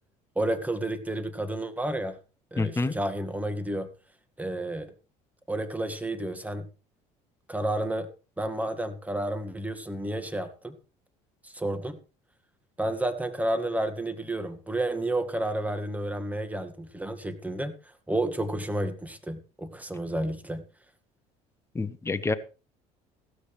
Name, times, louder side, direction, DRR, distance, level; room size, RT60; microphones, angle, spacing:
voice 1, 0.4-2.2 2.5-3.9 4.4-4.9 5.5-6.7 7.5-8.1 8.4-10.8 11.4-12.0 12.8-17.7 18.1-20.6, right 1 dB, 10° right, 10 dB, 1.9 m, -31 dB
voice 2, 2.6-2.9 21.7-22.3, left 3 dB, 15° left, 9 dB, 1.3 m, -27 dB
16.0 x 13.0 x 3.3 m, 0.33 s
supercardioid pair, 90°, 16 cm